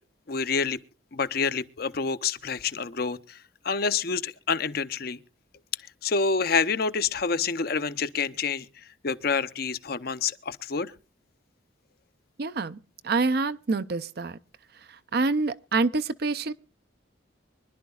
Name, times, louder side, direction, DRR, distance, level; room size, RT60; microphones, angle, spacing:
voice 1, 0.3-0.8 1.1-3.4 3.6-5.2 6.0-8.6 9.0-10.9, left 5 dB, 50° left, 0.6 m, -27 dB
voice 2, 12.4-12.8 13.0-14.4 14.9-16.5, right 3 dB, 50° right, 0.5 m, -26 dB
25.0 x 11.5 x 2.4 m
head